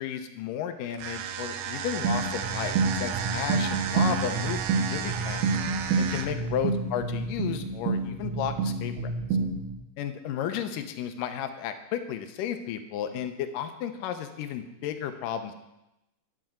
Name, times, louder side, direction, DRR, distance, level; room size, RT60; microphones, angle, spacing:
voice 1, 0.0-4.6 4.9-5.4 6.0-9.1 10.0-15.5, left 9 dB, 80° left, 8 dB, 2.2 m, -33 dB
sound 1, 0.9-6.5, right 9 dB, 85° right, 2.5 m, -33 dB
sound 2, 2.0-9.8, right 4 dB, 65° right, 2.4 m, -28 dB
10.0 x 8.6 x 4.5 m, 0.91 s
omnidirectional pair, 4.1 m